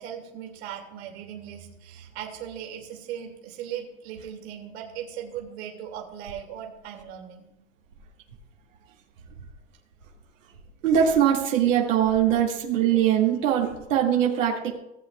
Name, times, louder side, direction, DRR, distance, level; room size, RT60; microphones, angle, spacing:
voice 1, 0.0-7.5, right 9 dB, 55° right, 1 dB, 2.7 m, -38 dB
voice 2, 10.8-14.7, right 9 dB, 80° right, -2 dB, 2.4 m, -22 dB
18.5 x 8.2 x 2.4 m, 0.87 s
hypercardioid pair, 140°, 38 cm